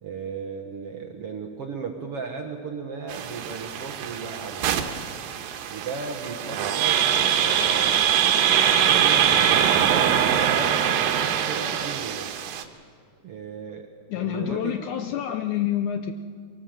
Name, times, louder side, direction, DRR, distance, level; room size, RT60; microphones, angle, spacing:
voice 1, 0.0-4.6 5.7-8.0 8.8-9.9 10.5-12.3 13.2-14.7, right 5 dB, 60° right, 4 dB, 1.6 m, -36 dB
sound 1, 3.1-12.6, right 9 dB, 80° right, 2.8 m, -23 dB
voice 2, 14.1-16.1, left 10 dB, 75° left, 8 dB, 1.8 m, -27 dB
23.5 x 18.0 x 7.6 m, 2.1 s
omnidirectional pair, 4.1 m